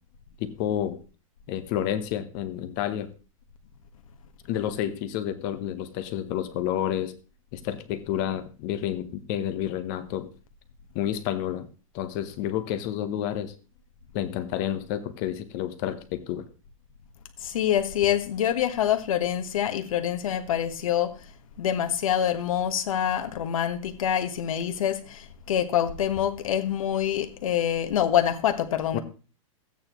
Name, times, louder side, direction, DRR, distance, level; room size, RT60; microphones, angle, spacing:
voice 1, 0.4-1.0 1.5-3.1 4.5-7.1 7.5-10.3 10.9-11.7 11.9-13.5 14.1-16.5 28.9-29.0, left 11 dB, 35° left, 0.8 m, -30 dB
voice 2, 17.4-21.2 21.6-29.0, left 10 dB, 75° left, 1.4 m, -26 dB
13.5 x 9.0 x 3.0 m
supercardioid pair, 165°, 18 cm